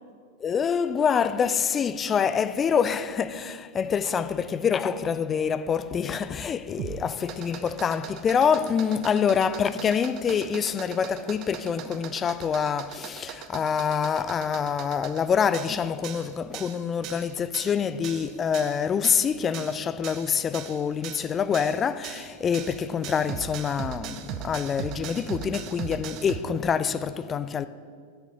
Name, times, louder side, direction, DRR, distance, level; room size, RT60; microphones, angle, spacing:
voice 1, 0.4-27.7, left 7 dB, 25° left, 0.3 m, -26 dB
sound 1, 6.7-26.4, right 10 dB, 40° right, 0.5 m, -39 dB
8.0 x 6.6 x 5.0 m
figure-of-eight pair, 90°, 0 cm